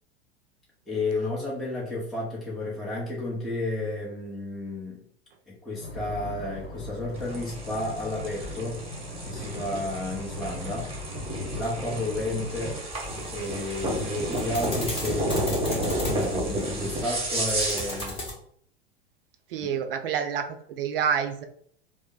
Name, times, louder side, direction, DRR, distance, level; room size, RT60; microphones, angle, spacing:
voice 1, 0.9-5.0 5.5-8.8 9.2-11.1 11.5-12.8 13.3-18.2, left 2 dB, ahead, -6 dB, 0.8 m, -32 dB
sound 1, 5.8-12.8, left 2 dB, 65° left, 0.9 m, -39 dB
sound 2, 7.1-18.1, right 1 dB, 15° right, 1.2 m, -31 dB
sound 3, 12.9-18.3, left 1 dB, 15° left, 1.1 m, -37 dB
voice 2, 19.5-21.4, right 7 dB, 60° right, 6 dB, 0.5 m, -28 dB
3.0 x 2.0 x 3.8 m, 0.63 s
figure-of-eight pair, 85°, 32 cm